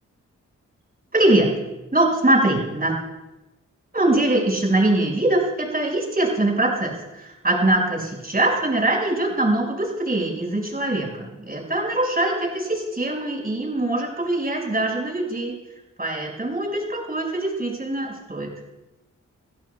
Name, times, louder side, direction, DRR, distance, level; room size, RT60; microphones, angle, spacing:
voice 1, 1.1-1.5 1.9-2.9 3.9-15.5 16.0-18.5, right 1 dB, 30° right, -1 dB, 6.0 m, -22 dB
26.0 x 16.5 x 2.4 m, 1.0 s
cardioid pair, 75°, 29 cm